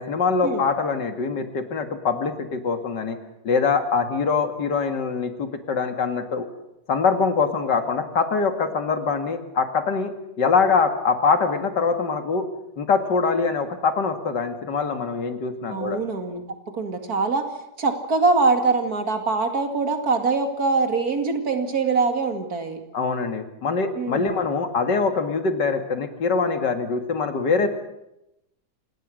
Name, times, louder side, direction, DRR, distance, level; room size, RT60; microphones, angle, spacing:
voice 1, 0.0-3.2 3.4-6.5 6.9-10.1 10.4-12.5 12.8-16.0 22.9-27.7, left 5 dB, 85° left, 7 dB, 2.6 m, -23 dB
voice 2, 15.7-16.4 16.7-17.4 17.8-22.8 24.0-24.3, right 4 dB, 60° right, 6 dB, 2.8 m, -23 dB
26.5 x 19.0 x 6.4 m, 0.89 s
omnidirectional pair, 1.8 m